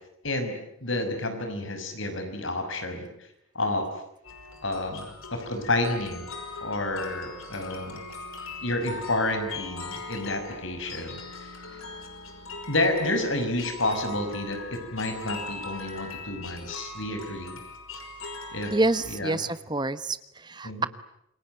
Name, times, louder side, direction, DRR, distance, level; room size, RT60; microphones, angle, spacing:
voice 1, 0.2-3.1 3.5-3.9 4.6-6.3 6.6-8.0 8.6-11.6 12.7-17.6 18.5-18.7 19.1-19.4 20.6-20.9, left 2 dB, 65° left, 7 dB, 5.7 m, -30 dB
sound 1, 4.2-19.2, left 3 dB, 80° left, 5.4 m, -40 dB
voice 2, 18.7-20.9, right 2 dB, 20° right, 14 dB, 1.1 m, -27 dB
28.0 x 22.5 x 9.2 m, 0.77 s
head